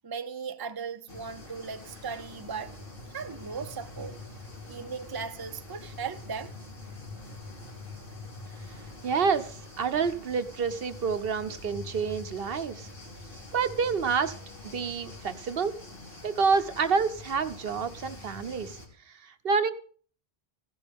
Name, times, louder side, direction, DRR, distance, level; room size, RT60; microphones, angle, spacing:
voice 1, 0.0-2.8 3.1-4.2 4.7-6.5, right 5 dB, 25° right, 0.7 m, -37 dB
sound 1, 1.1-18.9, left 2 dB, 60° left, 3.1 m, -45 dB
voice 2, 9.0-12.9 13.5-14.3 14.7-15.7 16.2-18.8 19.1-19.7, right 5 dB, 65° right, 1.0 m, -28 dB
15.5 x 11.5 x 3.5 m
omnidirectional pair, 1.0 m